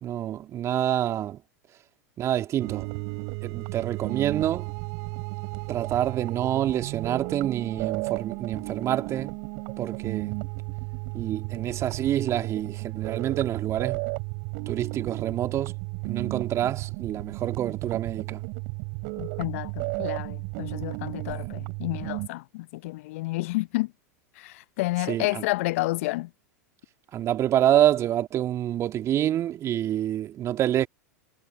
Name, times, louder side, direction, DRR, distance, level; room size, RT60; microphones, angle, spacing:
voice 1, 0.0-1.4 2.2-2.9 3.4-4.7 5.7-9.4 9.8-10.4 11.1-14.0 14.7-15.8 16.0-18.4 21.3-21.4 25.1-25.4 27.1-30.9, right 11 dB, 35° right, 2.6 m, -27 dB
sound 1, 2.6-22.3, right 40 dB or more, 50° right, 5.9 m, -33 dB
voice 2, 19.2-23.9 24.4-26.3, left 20 dB, 55° left, 0.8 m, -30 dB
figure-of-eight pair, 90°, 9 cm